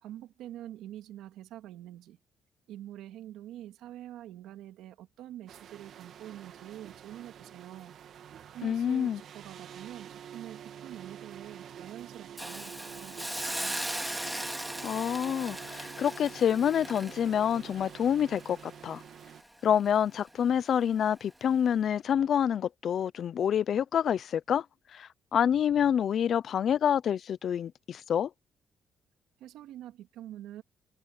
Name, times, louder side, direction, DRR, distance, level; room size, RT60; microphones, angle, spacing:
voice 1, 0.0-2.2 2.7-7.9 8.5-13.8 29.4-30.6, right 12 dB, 90° right, 2.8 m, -46 dB
sound 1, 5.5-19.4, right 9 dB, 70° right, 2.3 m, -48 dB
voice 2, 8.6-9.2 14.8-19.0 19.6-24.6 24.9-28.3, left 9 dB, 60° left, 0.6 m, -27 dB
Hiss, 12.4-19.4 19.8-20.0, right 1 dB, 10° right, 2.5 m, -38 dB
cardioid pair, 90°, 0 cm